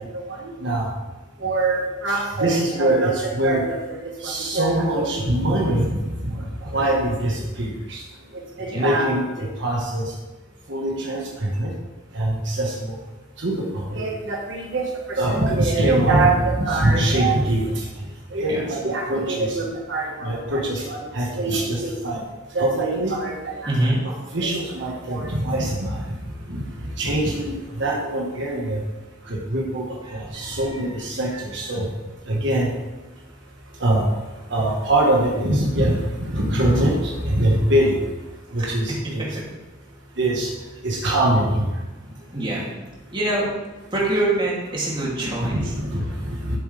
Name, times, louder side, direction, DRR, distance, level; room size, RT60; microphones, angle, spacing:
voice 1, 0.3-0.9 1.4-8.0 8.6-10.0 10.7-11.7 12.1-12.7 13.4-17.8 18.3-22.2 22.5-23.7 24.0-26.0 26.5-26.6 27.0-27.5 27.8-28.8 29.3-29.8 30.1-31.8 32.3-32.7 33.8-34.0 34.5-38.0 38.5-39.2 40.2-40.5 40.8-41.7 45.4-46.6, right 1 dB, 65° right, -3 dB, 1.5 m, -23 dB
voice 2, 23.6-24.0 30.1-30.8 31.3-31.4 31.7-31.8 38.6-38.7 42.3-42.7 43.1-43.5 43.9-45.7, right 1 dB, 25° right, -5 dB, 2.8 m, -25 dB
11.5 x 7.6 x 3.4 m, 1.1 s
head